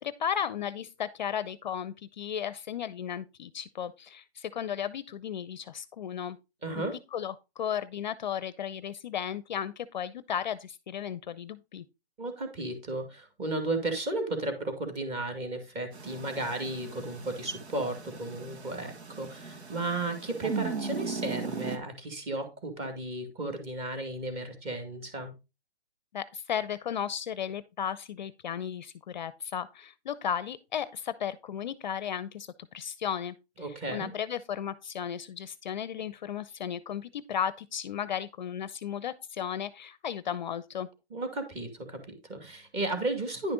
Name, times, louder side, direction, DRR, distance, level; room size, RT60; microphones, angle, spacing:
voice 1, 0.0-6.4 7.1-11.8 26.1-32.5 32.7-33.4 33.9-40.9, left 8 dB, 45° left, 0.6 m, -35 dB
voice 2, 6.6-7.0 12.2-25.3 33.6-34.1 41.1-43.5, right 2 dB, 20° right, 2.2 m, -34 dB
sound 1, 15.9-21.8, right 5 dB, 85° right, 1.9 m, -38 dB
10.5 x 5.9 x 3.9 m
hypercardioid pair, 150°, 33 cm